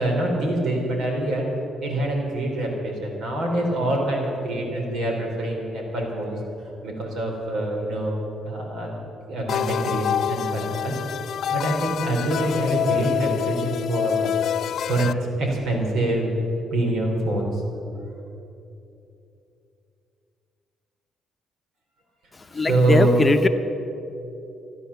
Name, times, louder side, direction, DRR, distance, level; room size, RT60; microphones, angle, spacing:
voice 1, 0.0-1.5 1.8-6.4 6.8-8.1 8.4-11.0 11.5-14.3 14.9-15.1 15.4-16.4 16.7-17.6 22.5-23.2, right 1 dB, 75° right, 1 dB, 3.6 m, -25 dB
sound 1, 9.5-15.1, left 9 dB, 65° left, 0.3 m, -26 dB
voice 2, 22.4-23.5, left 3 dB, 25° left, 7 dB, 0.8 m, -21 dB
14.0 x 11.5 x 7.0 m, 2.8 s
cardioid pair, 90°, 0 cm